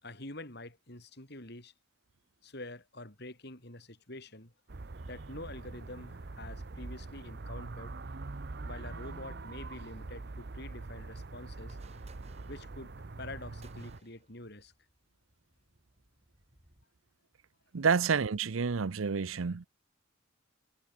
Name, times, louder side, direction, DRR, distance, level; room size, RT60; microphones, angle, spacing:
voice 1, 0.0-1.7 2.4-4.5 5.1-8.0 8.6-11.8 12.5-12.9 13.2-14.7, left 2 dB, 55° left, 6.1 m, -46 dB
sound 1, 4.7-14.0, right 3 dB, 55° right, 0.8 m, -43 dB
sound 2, 11.5-16.8, right 3 dB, 30° right, 5.1 m, -64 dB
voice 2, 17.7-19.7, right 5 dB, 85° right, 0.6 m, -29 dB
head